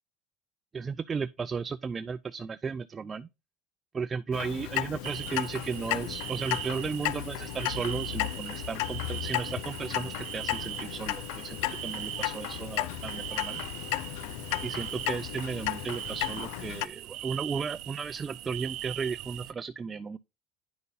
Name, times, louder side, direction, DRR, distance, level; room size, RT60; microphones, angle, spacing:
voice 1, 0.7-3.3 3.9-13.6 14.6-20.2, right 5 dB, 20° right, 0.4 m, -35 dB
Clock, 4.3-16.9, left 17 dB, 75° left, 0.4 m, -34 dB
sound 1, 5.0-19.5, right 15 dB, 60° right, 0.7 m, -40 dB
9.5 x 5.5 x 4.0 m
cardioid pair, 140°, 0 cm